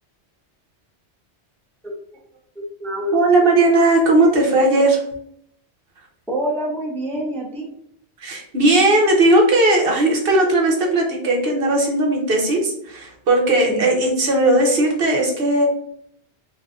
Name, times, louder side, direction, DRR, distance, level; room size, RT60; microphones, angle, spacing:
voice 1, 2.5-3.6 6.3-7.7 13.7-13.9, equal, ahead, -4 dB, 0.6 m, -26 dB
voice 2, 3.1-5.1 8.2-15.7, right 2 dB, 65° right, 1 dB, 0.9 m, -17 dB
3.8 x 2.6 x 2.4 m, 0.70 s
omnidirectional pair, 1.1 m